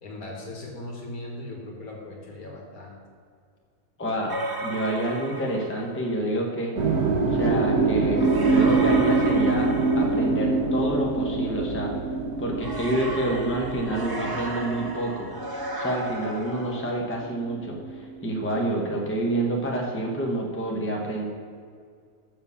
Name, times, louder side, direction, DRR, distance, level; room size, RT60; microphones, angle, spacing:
voice 1, 0.0-3.0, left 1 dB, 70° left, 0 dB, 2.0 m, -38 dB
voice 2, 4.0-4.3 4.6-6.7 7.3-11.9 12.4-15.3 15.7-21.3, right 1 dB, 10° left, 0 dB, 1.0 m, -28 dB
sound 1, 4.3-6.0 8.1-10.7 12.6-17.0, right 1 dB, 20° right, 0.6 m, -34 dB
sound 2, 6.8-16.9 17.1-18.8, right 3 dB, 80° right, 1.6 m, -25 dB
6.8 x 5.7 x 7.0 m, 2.2 s
omnidirectional pair, 1.6 m